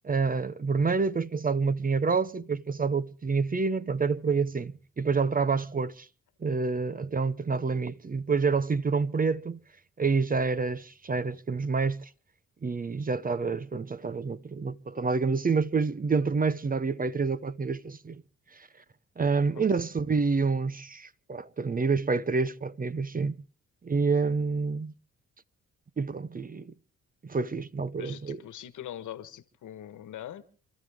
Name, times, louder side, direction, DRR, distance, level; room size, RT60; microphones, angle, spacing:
voice 1, 0.0-6.1 6.4-9.6 10.0-12.1 12.6-18.2 18.5-18.7 19.2-23.4 23.8-24.9 26.0-26.7 27.2-28.4, right 4 dB, 25° right, 0.8 m, -28 dB
voice 2, 28.0-30.5, left 11 dB, 70° left, 1.5 m, -42 dB
27.5 x 13.0 x 3.6 m
supercardioid pair, 55°, 32 cm